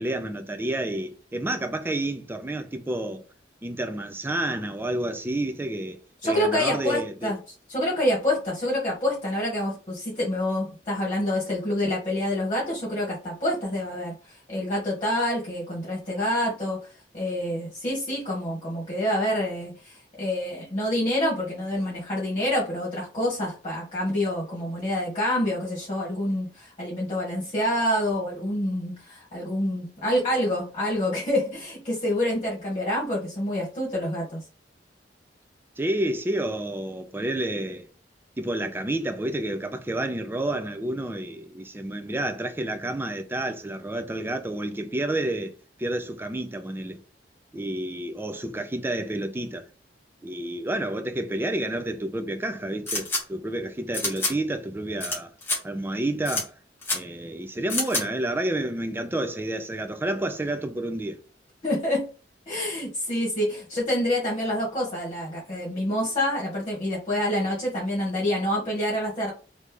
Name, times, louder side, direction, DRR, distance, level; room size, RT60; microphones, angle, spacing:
voice 1, 0.0-3.2 3.6-7.3 35.8-37.9 38.4-47.0 47.5-49.7 50.2-55.3 55.6-56.5 56.9-61.2, right 1 dB, 10° right, 0.4 m, -30 dB
voice 2, 6.2-7.4 7.7-16.8 17.1-34.4 61.6-62.0 62.5-69.3, left 1 dB, 30° left, 1.4 m, -27 dB
sound 1, 52.9-53.2 53.9-54.3 55.0-55.2 55.4-55.6 56.2-56.4 56.8-57.0 57.7-58.0, left 2 dB, 15° left, 1.2 m, -27 dB
3.2 x 2.7 x 3.3 m
head